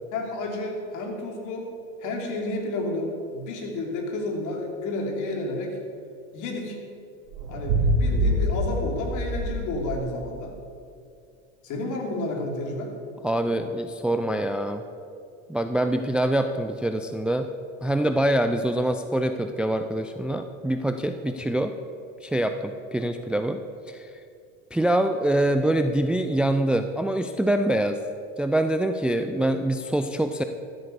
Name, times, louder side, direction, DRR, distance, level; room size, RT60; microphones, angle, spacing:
voice 1, 0.1-1.7 2.0-5.8 6.3-6.8 7.5-10.5 11.6-12.9, left 2 dB, 55° left, 1 dB, 3.1 m, -31 dB
sound 1, 7.3-10.1, equal, 75° right, 2.4 m, -25 dB
voice 2, 13.2-14.8 15.5-17.5 17.8-21.7 22.2-23.6 23.9-24.1 24.7-28.0 28.4-30.4, right 1 dB, 5° right, 8 dB, 0.5 m, -25 dB
14.0 x 8.0 x 7.0 m, 2.4 s
hypercardioid pair, 95°, 37 cm